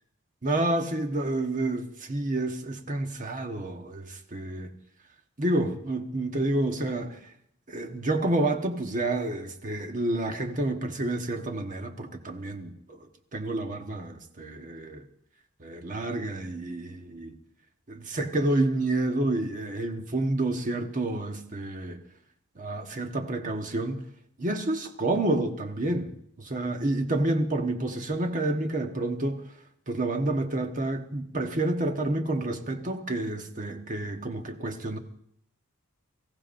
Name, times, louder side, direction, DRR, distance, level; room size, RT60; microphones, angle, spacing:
voice 1, 0.4-4.7 5.4-7.2 7.7-13.1 13.3-15.0 15.6-17.3 17.9-22.0 22.6-24.0 24.4-26.1 26.4-29.5 29.9-35.0, right 2 dB, 40° right, 1.2 m, -29 dB
24.0 x 15.0 x 2.6 m
head